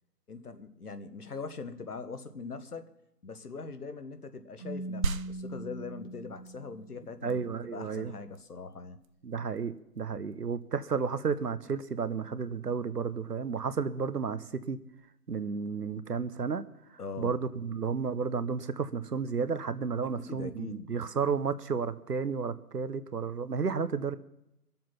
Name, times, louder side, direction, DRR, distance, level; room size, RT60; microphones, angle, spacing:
voice 1, 0.3-2.9 3.2-9.0 17.0-17.4 20.0-21.0, left 4 dB, 70° left, 9 dB, 1.4 m, -42 dB
Keyboard (musical), 4.6-7.3, right 2 dB, 30° left, 1.7 m, -41 dB
sound 1, 5.0-15.0, right 5 dB, 60° right, 0.6 m, -42 dB
voice 2, 7.2-8.1 9.2-14.8 15.3-16.6 17.2-24.2, right 5 dB, 80° right, 13 dB, 1.1 m, -32 dB
22.5 x 7.5 x 5.8 m, 0.81 s
figure-of-eight pair, 165°, 47 cm